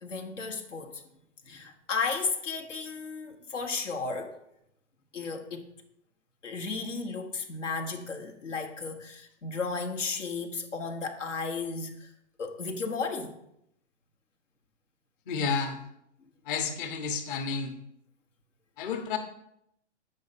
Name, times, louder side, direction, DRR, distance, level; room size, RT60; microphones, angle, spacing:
voice 1, 0.0-1.0 1.4-4.4 5.1-5.7 6.4-12.1 12.4-13.4, left 4 dB, 80° left, 4 dB, 1.1 m, -34 dB
voice 2, 15.3-15.8 16.4-17.7 18.8-19.2, left 5 dB, 45° left, 4 dB, 1.1 m, -31 dB
8.4 x 5.4 x 4.1 m, 0.77 s
hypercardioid pair, 125°, 36 cm